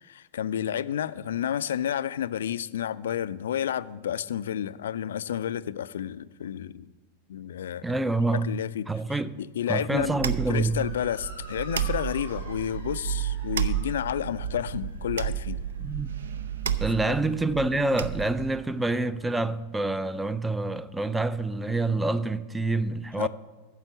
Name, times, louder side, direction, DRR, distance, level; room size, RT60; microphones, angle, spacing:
voice 1, 0.0-6.9 7.3-7.8 8.3-15.6 17.0-17.2 23.2-23.3, left 10 dB, 60° left, 0.3 m, -31 dB
voice 2, 7.8-8.5 8.9-9.4 9.7-10.8 15.8-16.1 16.8-23.3, right 2 dB, 10° right, 0.4 m, -27 dB
sound 1, 10.0-18.6, right 10 dB, 65° right, 0.5 m, -32 dB
Motor vehicle (road) / Siren, 10.5-19.1, equal, 85° right, 2.3 m, -49 dB
9.5 x 6.9 x 7.8 m
figure-of-eight pair, 90°, 0 cm